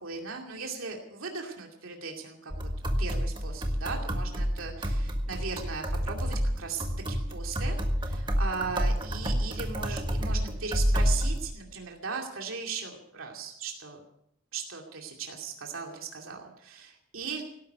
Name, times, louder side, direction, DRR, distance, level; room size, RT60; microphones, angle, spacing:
voice 1, 0.0-2.5 3.0-14.0 14.5-17.4, right 5 dB, 75° right, 1 dB, 2.5 m, -38 dB
sound 1, 2.5-11.5, equal, 25° right, 1.6 m, -29 dB
18.0 x 11.5 x 6.7 m, 0.72 s
head